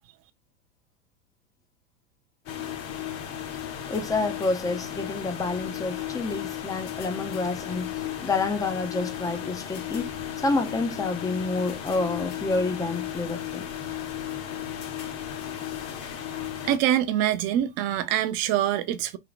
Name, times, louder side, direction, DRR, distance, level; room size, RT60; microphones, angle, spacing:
sound 1, 2.5-16.8, left 10 dB, 35° left, 0.8 m, -35 dB
voice 1, 3.9-10.1 10.4-13.7, left 3 dB, 10° left, 0.5 m, -28 dB
voice 2, 16.6-19.2, right 11 dB, 40° right, 0.6 m, -24 dB
3.5 x 2.2 x 3.9 m
hypercardioid pair, 100°, 42 cm